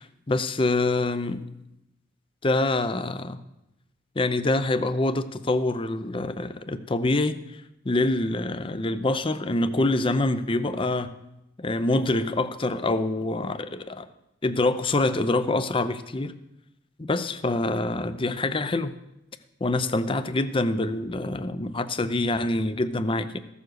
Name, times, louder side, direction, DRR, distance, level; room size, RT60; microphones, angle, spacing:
voice 1, 0.0-1.4 2.4-3.4 4.2-7.4 7.8-11.1 11.6-14.1 14.4-16.3 17.0-18.9 19.6-23.4, left 2 dB, 25° left, 12 dB, 0.6 m, -25 dB
14.5 x 7.1 x 6.3 m, 0.88 s
head